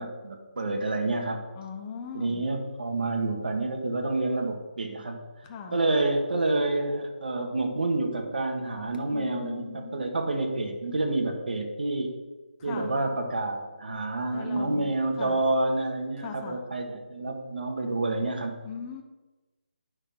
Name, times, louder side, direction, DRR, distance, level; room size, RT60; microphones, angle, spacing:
voice 1, 0.0-1.4 2.1-5.2 5.7-12.1 12.6-18.6, right 2 dB, 70° right, 3 dB, 1.8 m, -28 dB
voice 2, 1.6-2.4 5.4-5.8 9.1-10.0 12.6-12.9 14.3-15.4 16.2-16.6 18.6-19.0, left 6 dB, 20° left, 3 dB, 0.8 m, -39 dB
9.8 x 6.2 x 3.8 m, 1.2 s
hypercardioid pair, 160°, 5 cm